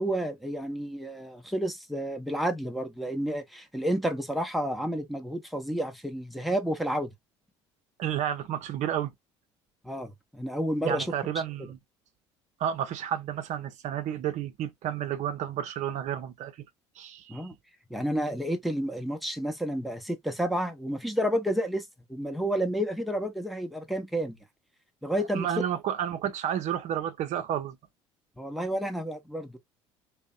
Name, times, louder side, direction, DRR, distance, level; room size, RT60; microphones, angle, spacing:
voice 1, 0.0-7.1 9.8-11.1 17.3-17.5 17.9-24.4 25.0-25.5 28.4-29.6, equal, ahead, 0.7 m, -30 dB
voice 2, 8.0-9.1 10.8-11.8 12.6-16.5 17.0-17.5 25.3-27.8, right 10 dB, 55° right, 0.6 m, -31 dB
2.6 x 2.1 x 2.3 m
hypercardioid pair, 65°, 15 cm